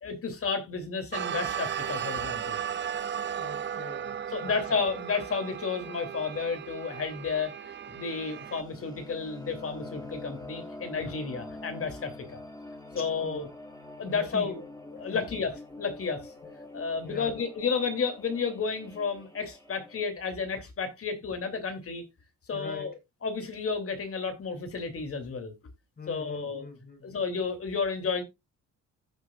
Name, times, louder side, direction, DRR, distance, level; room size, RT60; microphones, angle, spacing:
voice 1, 0.0-2.6 4.3-7.5 7.9-12.4 12.9-13.5 14.0-14.6 15.0-16.3 16.7-22.0 22.5-22.9 23.2-25.5 26.1-26.7 27.0-28.2, left 5 dB, 50° left, 3.0 m, -32 dB
sound 1, 1.1-8.6, right 8 dB, 40° right, 0.6 m, -35 dB
voice 2, 3.4-4.2 4.4-4.8 13.2-13.4 14.1-14.6 17.0-17.3 22.5-22.9 26.0-27.1, left 3 dB, 30° left, 5.3 m, -42 dB
sound 2, 8.1-20.1, left 2 dB, 10° left, 4.6 m, -45 dB
15.0 x 7.0 x 2.4 m
cardioid pair, 90°, 30 cm